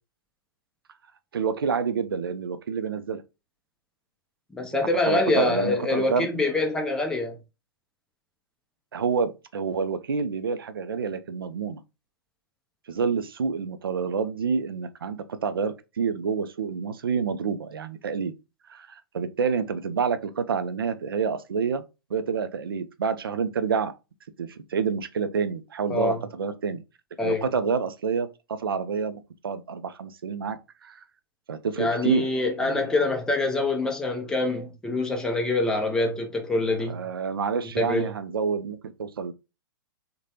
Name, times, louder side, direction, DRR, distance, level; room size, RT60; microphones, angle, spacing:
voice 1, 1.3-3.2 5.1-6.3 8.9-11.8 12.9-18.3 18.7-21.8 22.1-23.9 24.4-26.8 27.2-31.0 31.5-32.3 32.6-33.1 36.9-39.3, right 5 dB, 75° right, 0.4 m, -28 dB
voice 2, 4.5-7.4 25.9-26.2 27.2-27.5 31.8-37.0 37.8-38.1, left 2 dB, 5° left, 0.5 m, -25 dB
3.1 x 2.1 x 2.7 m
figure-of-eight pair, 110°, 12 cm